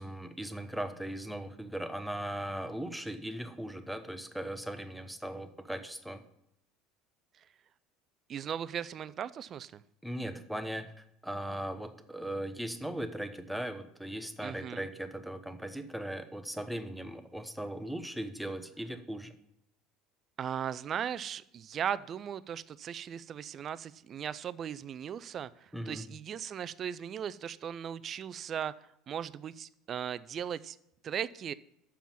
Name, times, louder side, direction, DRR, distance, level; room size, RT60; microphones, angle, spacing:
voice 1, 0.0-6.2 10.0-19.3 25.7-26.1, right 1 dB, ahead, 8 dB, 0.9 m, -38 dB
voice 2, 8.3-9.8 14.4-14.9 20.4-28.7 29.1-30.8 31.0-31.5, right 8 dB, 40° right, 17 dB, 0.4 m, -37 dB
7.2 x 5.7 x 7.2 m, 0.77 s
hypercardioid pair, 70°, 0 cm